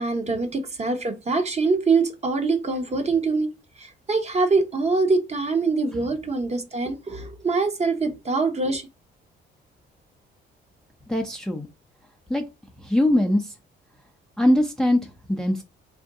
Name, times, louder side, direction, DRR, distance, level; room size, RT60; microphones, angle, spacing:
voice 1, 0.0-8.9, right 3 dB, 35° right, 1.0 m, -24 dB
voice 2, 11.1-11.7 12.3-12.4 12.8-13.5 14.4-15.6, left 1 dB, 5° left, 0.6 m, -22 dB
3.7 x 2.7 x 3.5 m
cardioid pair, 90°, 20 cm